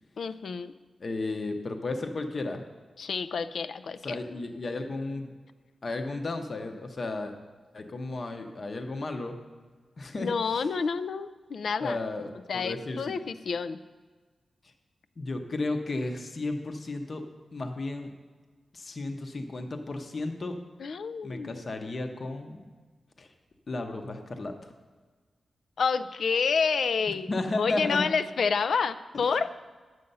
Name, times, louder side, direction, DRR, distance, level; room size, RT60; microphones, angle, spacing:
voice 1, 0.2-0.7 3.0-4.2 10.2-12.0 12.5-13.8 20.8-21.6 25.8-27.3 27.6-29.5, left 5 dB, 70° left, 12 dB, 0.4 m, -29 dB
voice 2, 1.0-2.6 4.0-5.3 5.8-7.3 7.7-9.4 10.0-10.3 11.8-12.3 12.5-13.1 15.2-17.2 17.5-18.1 18.7-20.6 21.2-22.6 23.2-23.3 23.7-24.7 27.3-28.0, left 2 dB, 40° left, 5 dB, 0.8 m, -33 dB
11.0 x 7.8 x 5.5 m, 1.4 s
wide cardioid pair, 145°, 0 cm